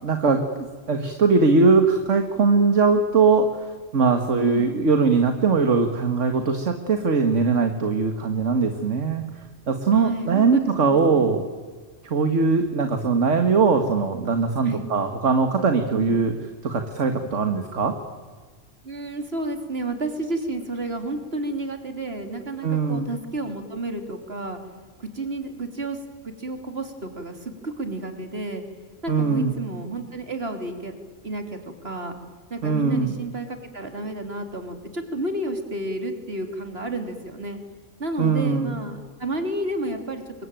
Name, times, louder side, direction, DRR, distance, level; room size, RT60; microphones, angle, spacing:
voice 1, 0.0-9.2 9.7-11.4 12.0-16.3 16.6-17.9 22.6-23.1 29.1-29.6 32.6-33.2 38.2-38.7, right 4 dB, 70° right, 6 dB, 2.1 m, -21 dB
voice 2, 4.3-4.7 9.9-11.3 14.6-14.8 15.9-16.2 18.8-24.6 25.0-28.6 29.0-30.9 31.2-31.6 31.8-32.2 32.5-37.6 38.0-40.2, right 2 dB, 50° right, 5 dB, 3.4 m, -31 dB
28.0 x 23.5 x 9.1 m, 1.5 s
omnidirectional pair, 1.3 m